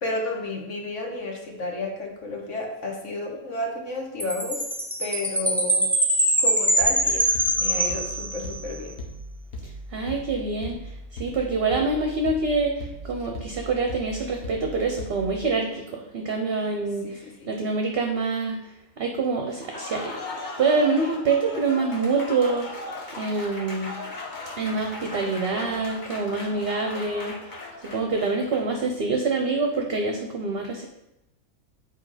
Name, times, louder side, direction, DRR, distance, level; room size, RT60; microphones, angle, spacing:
voice 1, 0.0-4.6 5.0-5.9 6.4-9.0 17.0-17.5, left 2 dB, 60° left, 1 dB, 1.7 m, -32 dB
Chime, 4.2-8.7, right 1 dB, ahead, 0.7 m, -23 dB
sound 1, 6.8-15.5, equal, 90° left, 1.7 m, -39 dB
voice 2, 9.9-10.8 11.2-18.6 19.0-20.1 20.6-22.8 23.2-23.9 24.6-27.3 27.8-30.9, right 3 dB, 50° right, 2 dB, 0.9 m, -26 dB
Applause, 19.5-28.9, left 2 dB, 35° left, 1.2 m, -38 dB
7.5 x 4.4 x 4.9 m, 0.89 s
omnidirectional pair, 1.5 m